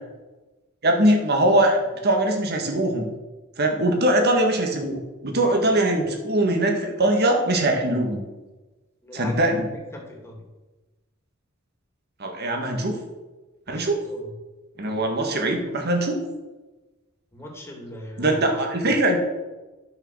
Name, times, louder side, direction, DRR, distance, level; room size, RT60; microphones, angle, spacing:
voice 1, 0.8-3.1 3.6-8.2 9.1-9.7 12.2-13.0 13.7-14.1 14.8-16.2 18.2-19.2, right 1 dB, 55° right, 3 dB, 1.8 m, -22 dB
voice 2, 9.0-9.4 9.7-10.5 13.7-14.3 17.3-18.6, left 1 dB, 15° left, 0 dB, 2.3 m, -40 dB
10.5 x 6.6 x 6.3 m, 1.1 s
head